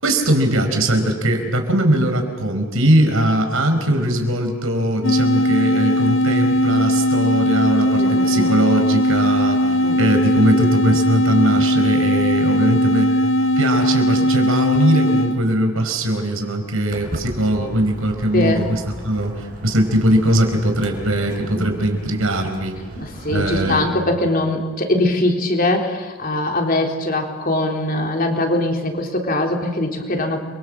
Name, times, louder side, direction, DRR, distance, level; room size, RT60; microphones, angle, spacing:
voice 1, 0.0-13.1 13.6-22.7 23.3-23.9, right 1 dB, 75° right, 5 dB, 4.6 m, -20 dB
sound 1, 5.0-15.4, equal, 70° left, 1.5 m, -18 dB
voice 2, 8.0-8.5 9.7-10.0 18.3-18.8 21.6-21.7 23.0-30.4, left 1 dB, 40° left, 2 dB, 3.7 m, -22 dB
Walk footsteps, 16.9-23.8, right 1 dB, 45° right, 4.6 m, -35 dB
30.0 x 24.0 x 7.6 m, 1.4 s
head